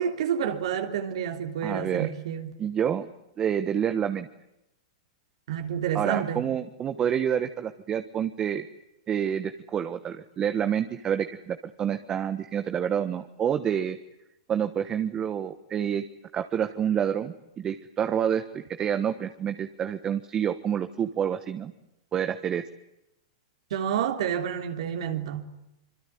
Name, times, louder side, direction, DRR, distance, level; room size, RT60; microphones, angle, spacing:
voice 1, 0.0-2.5 5.5-6.4 23.7-25.5, right 8 dB, 70° right, 3.4 m, -29 dB
voice 2, 1.6-2.1 2.6-3.1 3.4-4.3 5.9-8.7 9.1-14.0 14.5-16.0 16.3-21.7 22.1-22.6, right 8 dB, 25° right, 1.2 m, -28 dB
26.0 x 23.5 x 9.4 m
hypercardioid pair, 140°, 3 cm